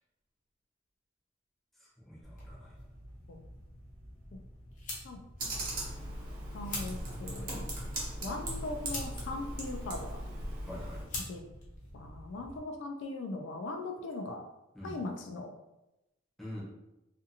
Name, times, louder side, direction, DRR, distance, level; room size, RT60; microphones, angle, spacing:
voice 1, 1.8-2.7 10.6-11.0 14.7-15.0 16.4-16.6, left 1 dB, ahead, -7 dB, 0.7 m, -45 dB
sound 1, 2.2-12.6, left 2 dB, 40° left, 0.8 m, -46 dB
Computer keyboard, 5.4-11.0, right 1 dB, 45° right, 0.7 m, -39 dB
voice 2, 6.5-7.7 8.2-10.2 11.3-11.4 11.9-14.5 14.8-15.5, left 2 dB, 60° left, 3 dB, 0.3 m, -40 dB
2.6 x 2.4 x 2.7 m, 0.94 s
head